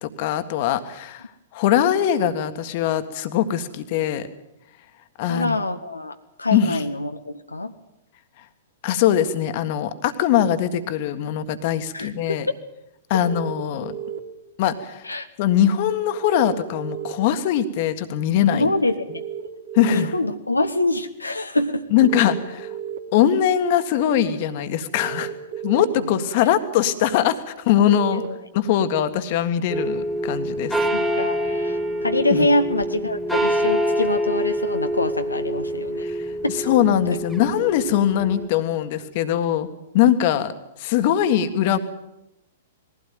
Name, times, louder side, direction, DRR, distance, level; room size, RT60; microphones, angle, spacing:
voice 1, 0.0-1.2 1.5-4.3 5.2-5.6 6.5-6.8 8.8-12.5 13.1-13.9 14.6-15.0 15.4-18.7 19.7-20.1 21.9-22.7 23.1-25.3 25.6-28.2 28.5-30.7 32.3-32.5 36.0-36.3 36.6-39.7 39.9-40.5 40.8-41.8, left 10 dB, 45° left, 10 dB, 1.7 m, -21 dB
voice 2, 5.3-7.7 11.9-12.4 15.0-15.3 18.5-19.2 19.9-22.1 26.0-26.5 28.1-28.4 30.9-36.1 36.4-36.7 37.1-37.2, left 2 dB, 80° left, 7 dB, 1.1 m, -25 dB
sound 1, 13.2-14.2 16.1-17.1 19.1-20.0 22.0-23.0 24.9-25.9 27.9-28.3, right 9 dB, 65° right, 2.9 m, -33 dB
sound 2, 29.7-38.5, equal, ahead, 2.3 m, -26 dB
21.0 x 16.0 x 9.3 m, 0.89 s
figure-of-eight pair, 105°, 0 cm